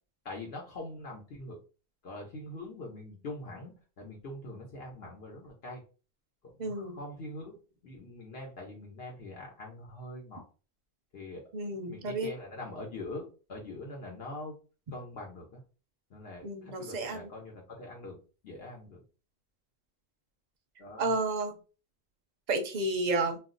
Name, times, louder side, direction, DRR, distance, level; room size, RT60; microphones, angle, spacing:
voice 1, 0.2-1.6 2.0-5.8 6.6-7.6 7.8-10.4 11.1-11.4 11.9-14.5 14.9-15.6 16.1-18.2 18.4-19.0 20.8-21.1, left 2 dB, 70° left, 0 dB, 1.0 m, -43 dB
voice 2, 6.6-7.0 11.5-12.3 16.4-17.3 21.0-21.5 22.5-23.4, right 2 dB, 50° right, 4 dB, 0.6 m, -31 dB
2.4 x 2.0 x 3.7 m, 0.34 s
omnidirectional pair, 1.1 m